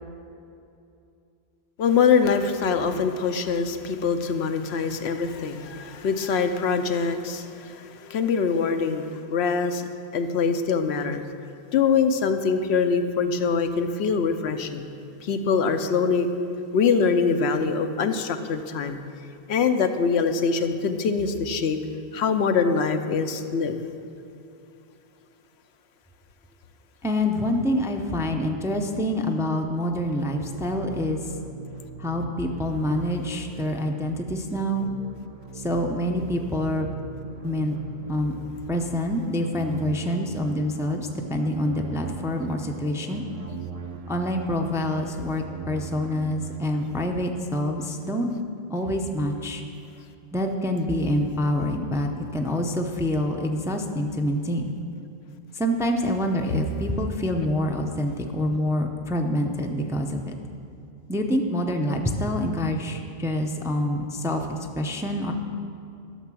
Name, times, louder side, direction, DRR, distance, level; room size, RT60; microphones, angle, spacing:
voice 1, 1.8-11.2 11.7-14.8 15.2-16.3 16.7-19.0 19.5-21.8 22.1-23.8, left 5 dB, 85° left, 8 dB, 0.9 m, -24 dB
voice 2, 27.0-31.3 32.0-34.9 35.5-36.9 37.4-37.7 38.1-38.4 38.7-43.2 44.1-48.3 48.7-49.6 50.3-54.7 55.5-60.3 61.1-65.3, left 1 dB, 5° right, 3 dB, 0.5 m, -26 dB
sound 1, 29.9-47.0, right 3 dB, 40° right, 0.7 m, -40 dB
12.0 x 6.7 x 6.2 m, 2.6 s
omnidirectional pair, 1.1 m